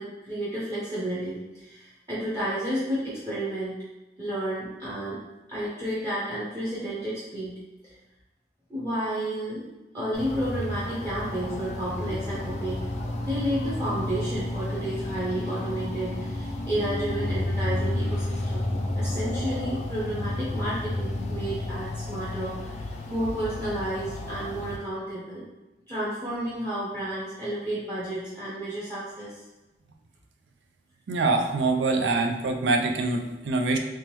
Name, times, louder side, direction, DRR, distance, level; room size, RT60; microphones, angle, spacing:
voice 1, 0.0-3.8 4.2-5.2 5.5-7.5 8.7-9.6 9.9-12.8 13.2-25.4 25.9-29.4, right 1 dB, 20° right, -9 dB, 0.8 m, -31 dB
sound 1, 10.1-24.8, left 1 dB, 40° left, 0.4 m, -31 dB
voice 2, 31.1-33.8, right 3 dB, 85° right, 4 dB, 0.5 m, -24 dB
3.6 x 3.0 x 3.0 m, 1.0 s
head